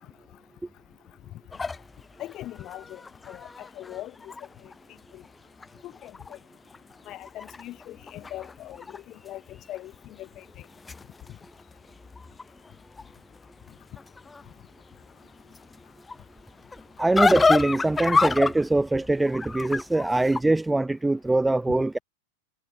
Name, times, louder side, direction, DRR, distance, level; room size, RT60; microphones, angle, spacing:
sound 1, 1.5-4.7 5.2-5.3 5.6-6.4 6.7-9.0 9.3-9.8 10.4-20.4, left 4 dB, 10° left, 1.0 m, -30 dB
voice 1, 2.2-3.0 3.3-4.1 5.1-5.2 5.8-6.4 7.1-10.4, left 14 dB, 35° left, 6.3 m, -41 dB
voice 2, 17.0-22.0, right 2 dB, 5° right, 1.2 m, -23 dB
figure-of-eight pair, 90°, 0 cm